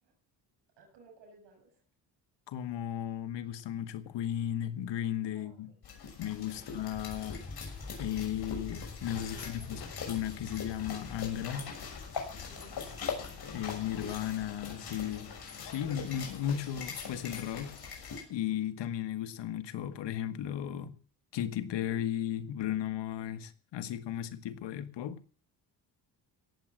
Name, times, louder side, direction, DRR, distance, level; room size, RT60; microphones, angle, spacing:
voice 1, 0.8-1.8 5.3-5.8 6.5-6.7 9.3-9.8 12.4-13.1, right 3 dB, 90° right, 6.8 m, -57 dB
voice 2, 2.5-5.8 6.2-7.5 8.0-11.7 13.5-15.4 15.6-17.8 18.3-20.9 21.3-25.2, left 10 dB, 85° left, 1.7 m, -35 dB
sound 1, 5.8-18.2, left 6 dB, 65° left, 6.7 m, -42 dB
sound 2, 6.9-13.7, left 2 dB, 25° left, 3.3 m, -47 dB
17.5 x 7.8 x 7.6 m
cardioid pair, 85°, 41 cm